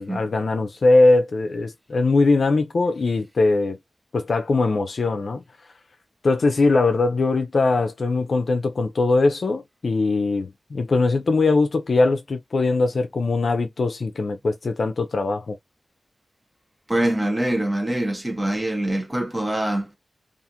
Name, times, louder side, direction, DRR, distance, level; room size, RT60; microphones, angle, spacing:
voice 1, 0.0-3.8 4.1-5.4 6.2-15.6, left 3 dB, 60° left, 0.4 m, -21 dB
voice 2, 16.9-20.0, right 1 dB, 15° right, 0.8 m, -24 dB
2.4 x 2.4 x 2.8 m
wide cardioid pair, 105°, 0 cm